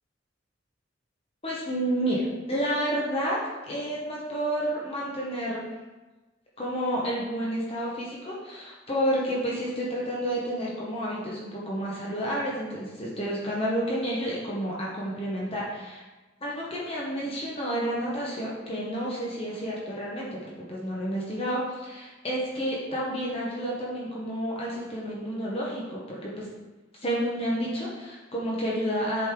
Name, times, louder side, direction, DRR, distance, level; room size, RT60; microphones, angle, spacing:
voice 1, 1.4-5.7 6.6-16.0 16.4-26.5 27.0-29.3, equal, 30° left, -5 dB, 1.2 m, -30 dB
7.7 x 5.4 x 3.8 m, 1.2 s
head